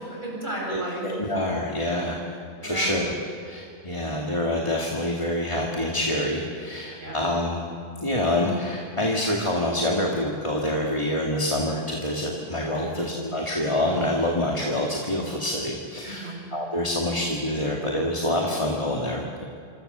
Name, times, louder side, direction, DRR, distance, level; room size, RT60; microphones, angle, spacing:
voice 1, 0.0-1.4 1.8-2.0 2.3-2.9 7.0-7.2 12.8-13.1 16.0-16.4, right 1 dB, 40° right, -2 dB, 7.9 m, -35 dB
voice 2, 0.7-2.2 2.6-3.1 3.4-7.6 8.0-19.4, left 1 dB, 25° left, -2 dB, 2.3 m, -26 dB
26.5 x 25.5 x 6.9 m, 2.3 s
omnidirectional pair, 1.2 m